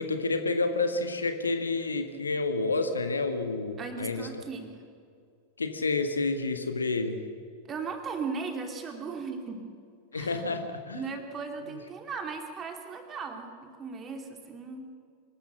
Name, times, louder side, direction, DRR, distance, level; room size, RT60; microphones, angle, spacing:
voice 1, 0.0-4.3 5.6-7.2 10.1-11.0, left 3 dB, 75° left, 8 dB, 1.5 m, -29 dB
voice 2, 3.8-4.7 7.7-9.6 10.1-10.4 10.9-14.9, right 5 dB, 25° right, 4 dB, 2.7 m, -37 dB
25.0 x 13.5 x 7.6 m, 2.3 s
figure-of-eight pair, 90°, 0 cm